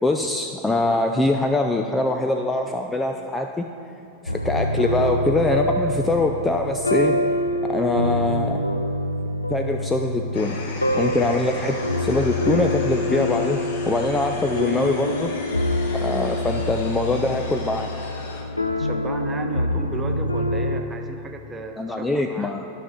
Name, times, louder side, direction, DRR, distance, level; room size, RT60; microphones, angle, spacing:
voice 1, 0.0-3.7 4.2-7.2 7.6-8.6 9.5-10.6 10.9-15.3 16.0-17.9 21.8-22.7, left 2 dB, 10° left, 4 dB, 0.4 m, -23 dB
sound 1, 4.3-20.8, left 1 dB, 85° left, 0.4 m, -25 dB
sound 2, 10.3-18.4, left 3 dB, 55° left, 1.1 m, -36 dB
voice 2, 18.7-22.6, right 3 dB, 15° right, 5 dB, 0.8 m, -35 dB
13.0 x 5.9 x 3.9 m, 2.8 s
figure-of-eight pair, 90°, 0 cm